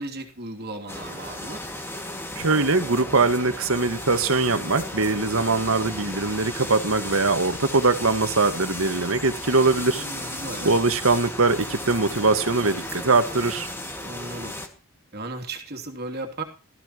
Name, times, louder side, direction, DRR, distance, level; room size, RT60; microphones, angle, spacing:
voice 1, 0.0-1.6 9.9-10.8 14.0-14.5 15.1-16.4, right 2 dB, 50° right, 3.0 m, -35 dB
sound 1, 0.9-14.7, left 1 dB, 10° left, 2.2 m, -35 dB
voice 2, 2.3-10.0 10.6-13.7, right 3 dB, 75° right, 1.7 m, -22 dB
17.5 x 14.5 x 3.1 m
head